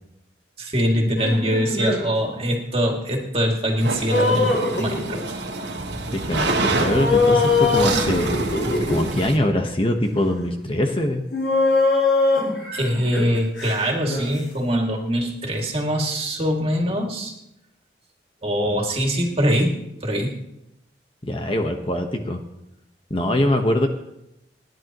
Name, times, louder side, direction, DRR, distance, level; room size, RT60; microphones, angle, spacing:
voice 1, 0.6-5.4 12.7-17.3 18.4-19.7 20.0-20.3, equal, 35° right, 1 dB, 2.4 m, -23 dB
sound 1, 1.2-2.0 4.1-5.3 6.8-9.0 10.2-10.3 11.3-14.2, left 3 dB, 90° left, 6.3 m, -21 dB
sound 2, 3.8-9.4, right 3 dB, 75° right, 1.8 m, -27 dB
voice 2, 6.1-8.3 8.9-11.2 18.6-18.8 21.2-22.4 23.1-23.9, left 1 dB, 30° left, 4 dB, 1.1 m, -23 dB
29.5 x 10.5 x 3.0 m, 0.85 s
head